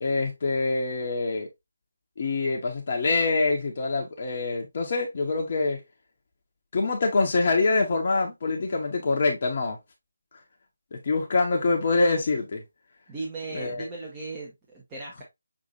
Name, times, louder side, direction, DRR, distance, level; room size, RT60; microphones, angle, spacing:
voice 1, 0.0-1.5 2.2-5.8 6.7-9.8 10.9-12.6 13.5-13.9, left 3 dB, 40° left, 1.0 m, -25 dB
voice 2, 13.1-15.2, right 3 dB, 15° right, 1.2 m, -37 dB
6.5 x 2.9 x 2.7 m
figure-of-eight pair, 155°, 0 cm